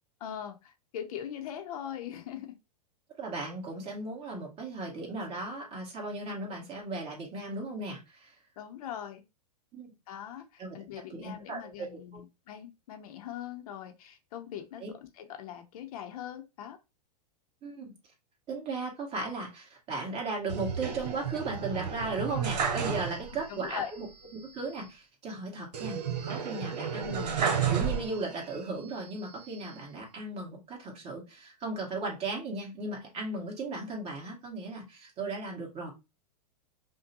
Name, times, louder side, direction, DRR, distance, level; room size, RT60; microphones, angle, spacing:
voice 1, 0.2-2.5 8.6-9.2 10.1-14.8 15.1-16.8 23.5-23.9, left 9 dB, 60° left, 0.7 m, -41 dB
voice 2, 3.2-8.3 9.7-9.9 10.6-10.7 11.1-12.0 14.8-14.9 17.6-17.9 18.5-24.1 24.3-35.9, right 3 dB, 30° right, 1.6 m, -36 dB
sound 1, 20.5-23.5 23.8-23.9 25.7-28.5 29.0-29.8, right 7 dB, 80° right, 1.0 m, -32 dB
5.2 x 2.2 x 2.7 m
hypercardioid pair, 125°, 21 cm